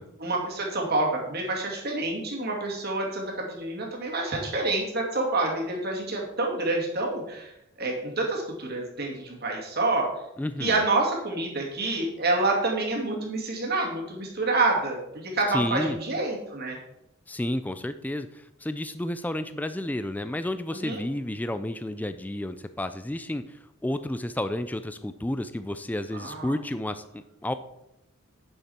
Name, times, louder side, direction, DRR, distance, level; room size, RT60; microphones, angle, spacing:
voice 1, 0.2-7.5 7.8-10.1 10.6-16.8 20.8-21.0 26.2-26.5, right 2 dB, 50° right, -1 dB, 2.4 m, -27 dB
voice 2, 10.4-10.8 15.5-16.0 17.3-27.5, left 1 dB, 10° left, 11 dB, 0.3 m, -31 dB
9.4 x 6.8 x 4.3 m, 0.85 s
head